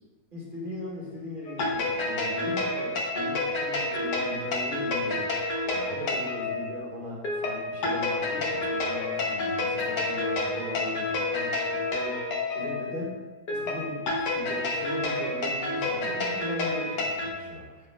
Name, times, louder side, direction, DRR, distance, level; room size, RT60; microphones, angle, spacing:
voice 1, 0.3-5.3 5.6-17.9, left 1 dB, 30° right, -4 dB, 1.9 m, -38 dB
sound 1, 1.5-17.3, left 2 dB, 80° left, 1.6 m, -29 dB
8.7 x 7.1 x 2.3 m, 1.3 s
omnidirectional pair, 1.7 m